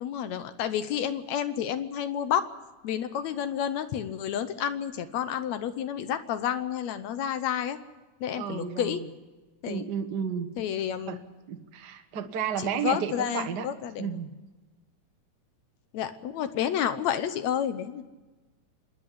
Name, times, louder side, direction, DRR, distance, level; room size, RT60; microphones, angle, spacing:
voice 1, 0.0-2.5 2.8-7.8 8.2-9.0 9.6-9.8 10.6-11.2 12.8-14.1 15.9-18.0, left 9 dB, 70° left, 11 dB, 2.0 m, -30 dB
voice 2, 8.3-9.1 9.7-10.5 11.1-11.2 11.5-13.7 14.0-14.3, right 7 dB, 55° right, 7 dB, 1.2 m, -32 dB
26.0 x 10.5 x 9.9 m, 1.2 s
omnidirectional pair, 3.5 m